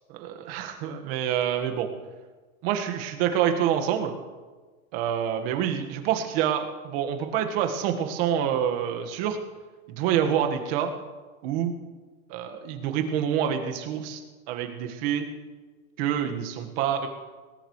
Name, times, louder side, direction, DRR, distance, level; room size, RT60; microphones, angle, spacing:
voice 1, 0.1-1.9 2.6-4.1 4.9-9.4 9.9-10.9 11.4-11.7 12.3-14.2 14.5-15.3 16.0-17.1, right 9 dB, 45° right, 4 dB, 1.7 m, -27 dB
19.0 x 17.0 x 3.2 m, 1.3 s
supercardioid pair, 150°, 43 cm